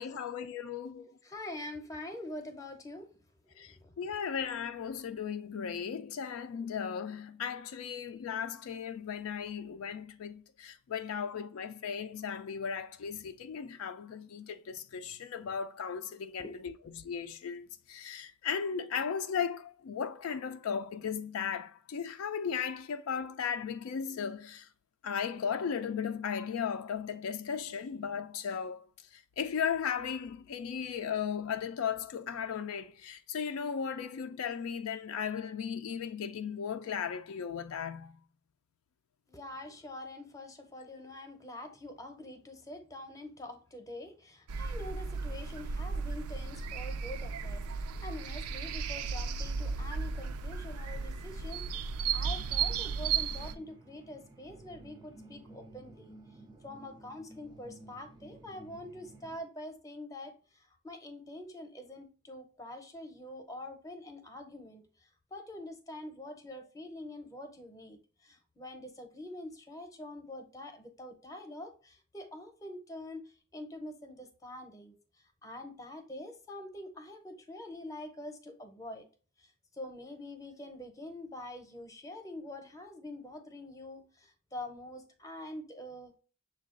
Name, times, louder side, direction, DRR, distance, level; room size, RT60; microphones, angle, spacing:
voice 1, 0.0-1.1 3.6-24.7 25.0-38.2, left 7 dB, 75° left, 0.4 m, -36 dB
voice 2, 1.0-3.1 3.6-4.0 16.4-16.6 39.3-56.1 56.6-60.3 60.8-64.8 65.3-68.0 68.2-73.2 73.5-74.9 75.4-79.0 79.8-86.1, left 1 dB, 15° left, 0.6 m, -45 dB
sound 1, 44.5-53.5, right 5 dB, 90° right, 0.4 m, -35 dB
sound 2, 52.2-59.4, right 2 dB, 20° right, 0.4 m, -54 dB
6.4 x 2.3 x 3.6 m
head